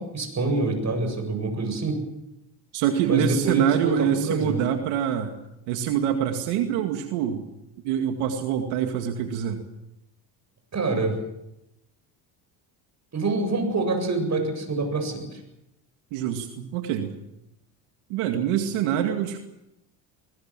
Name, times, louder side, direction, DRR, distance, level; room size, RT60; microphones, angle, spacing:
voice 1, 0.0-2.0 3.0-4.6 10.7-11.2 13.1-15.4, right 3 dB, 35° right, 6 dB, 7.7 m, -26 dB
voice 2, 2.7-5.4 5.7-7.4 7.8-9.6 16.1-17.1 18.1-19.4, right 9 dB, 85° right, 5 dB, 2.3 m, -25 dB
22.0 x 20.0 x 7.5 m, 0.89 s
supercardioid pair, 90°, 48 cm